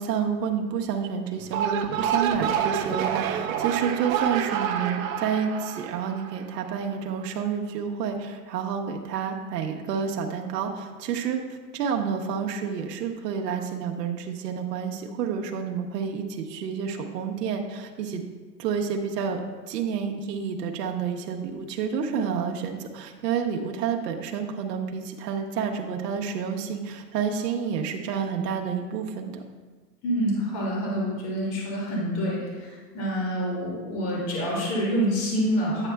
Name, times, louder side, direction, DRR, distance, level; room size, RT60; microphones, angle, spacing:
voice 1, 0.0-11.4 11.7-18.2 18.6-19.4 19.7-29.4, right 7 dB, 85° right, 3 dB, 0.9 m, -29 dB
sound 1, 1.4-6.7, right 9 dB, 60° right, 0.7 m, -28 dB
voice 2, 30.0-35.9, equal, 40° left, -4 dB, 2.4 m, -27 dB
9.7 x 8.2 x 2.3 m, 1.4 s
supercardioid pair, 165°, 47 cm